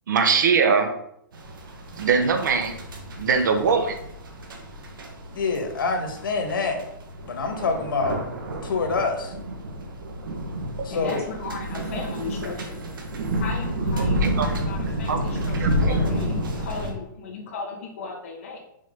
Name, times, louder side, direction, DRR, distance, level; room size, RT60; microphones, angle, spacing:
voice 1, 0.1-0.9 2.0-2.8 3.2-4.0 14.0-14.5 15.1-15.2 15.6-15.7, right 5 dB, 60° right, 7 dB, 1.1 m, -21 dB
sound 1, 1.3-16.9, equal, 75° right, 1.8 m, -30 dB
voice 2, 5.3-6.8 7.2-8.2 8.6-9.4 10.8-11.3, left 4 dB, 90° left, 3 dB, 1.8 m, -26 dB
voice 3, 10.9-12.9 13.3-18.6, left 4 dB, 40° left, 0 dB, 1.7 m, -35 dB
6.4 x 4.2 x 5.4 m, 0.77 s
hypercardioid pair, 175°, 11 cm